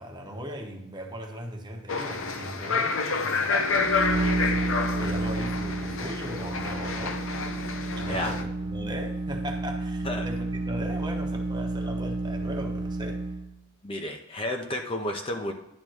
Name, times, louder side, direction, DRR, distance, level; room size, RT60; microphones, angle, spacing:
voice 1, 0.0-7.2 8.0-13.2, equal, 20° right, 2 dB, 1.0 m, -38 dB
sound 1, 1.9-8.4, left 4 dB, 70° left, 0.8 m, -29 dB
sound 2, 3.6-13.5, right 2 dB, 90° right, 1.1 m, -31 dB
voice 2, 13.8-15.5, left 1 dB, 25° left, 3 dB, 0.7 m, -31 dB
10.5 x 3.7 x 6.3 m, 0.88 s
head